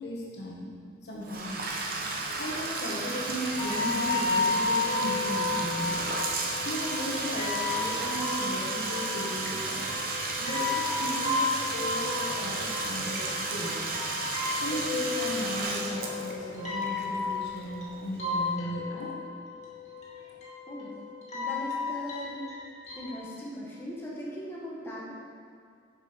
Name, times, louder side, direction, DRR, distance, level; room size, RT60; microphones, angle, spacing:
voice 1, 0.0-0.7 1.0-1.6 2.3-6.0 6.5-9.9 10.4-13.9 14.6-19.1 20.1-20.3, equal, 60° left, -3 dB, 1.4 m, -36 dB
Bathtub (filling or washing), 1.2-18.0, right 3 dB, 50° right, 0.9 m, -33 dB
sound 1, 3.6-23.2, left 3 dB, 35° left, 1.8 m, -33 dB
voice 2, 20.7-21.0 21.3-22.4 22.9-25.1, equal, 15° left, -6 dB, 1.4 m, -39 dB
7.4 x 6.4 x 5.0 m, 2.1 s
head